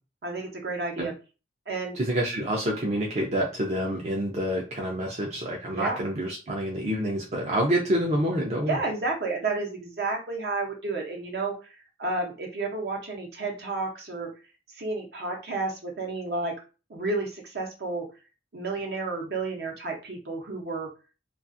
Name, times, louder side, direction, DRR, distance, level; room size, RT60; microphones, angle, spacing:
voice 1, 0.2-1.1 1.7-2.0 5.7-6.0 8.7-11.7 12.0-14.3 14.7-16.5 16.9-18.1 18.5-20.9, right 3 dB, 65° right, 1 dB, 0.8 m, -31 dB
voice 2, 1.9-8.8, equal, 40° right, -1 dB, 0.5 m, -27 dB
2.4 x 2.3 x 2.5 m, 0.33 s
head